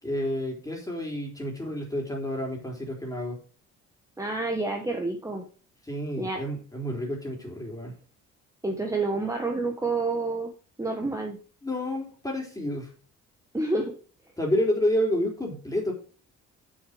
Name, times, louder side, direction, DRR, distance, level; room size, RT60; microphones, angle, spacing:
voice 1, 0.0-3.4 5.8-7.9 11.6-12.9 14.4-15.9, left 1 dB, 10° left, 0 dB, 3.8 m, -29 dB
voice 2, 4.2-5.4 6.2-6.4 8.6-10.5 10.8-11.4 13.5-13.9, right 3 dB, 10° right, 3 dB, 1.4 m, -28 dB
7.0 x 6.7 x 5.2 m, 0.39 s
cardioid pair, 90°, 30 cm